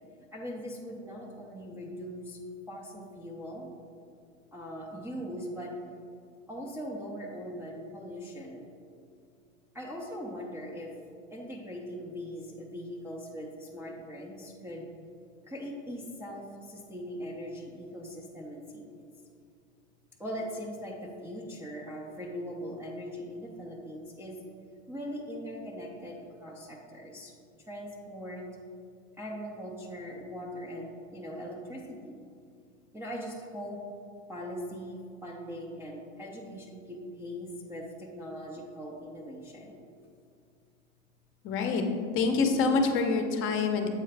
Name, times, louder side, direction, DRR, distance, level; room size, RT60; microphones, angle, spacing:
voice 1, 0.3-2.4 2.7-3.7 4.5-5.7 6.5-8.7 9.7-10.9 11.3-14.9 15.5-19.1 20.2-24.4 24.9-27.3 27.7-28.5 29.2-32.2 32.9-33.8 34.3-39.8, equal, 5° right, -3 dB, 0.5 m, -40 dB
voice 2, 41.4-41.9 42.1-43.9, left 4 dB, 35° left, 5 dB, 0.7 m, -26 dB
7.7 x 4.6 x 3.3 m, 2.3 s
hypercardioid pair, 110°, 38 cm